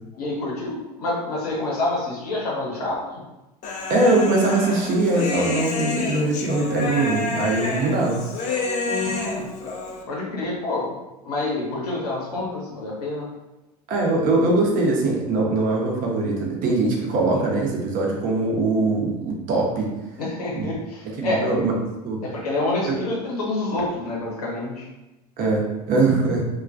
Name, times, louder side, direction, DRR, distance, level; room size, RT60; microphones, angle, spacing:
voice 1, 0.2-3.2 8.8-9.5 10.1-10.9 11.2-13.3 17.3-17.4 20.2-21.5 22.2-24.9, left 2 dB, 80° left, -4 dB, 0.8 m, -27 dB
Human voice, 3.6-10.0, left 3 dB, 40° left, 0.5 m, -29 dB
voice 2, 3.9-8.2 13.9-19.9 20.5-20.7 21.2-21.8 22.0-22.2 22.9-23.0 25.4-26.5, right 2 dB, 45° right, -1 dB, 0.7 m, -22 dB
2.2 x 2.2 x 2.5 m, 0.99 s
hypercardioid pair, 75°, 19 cm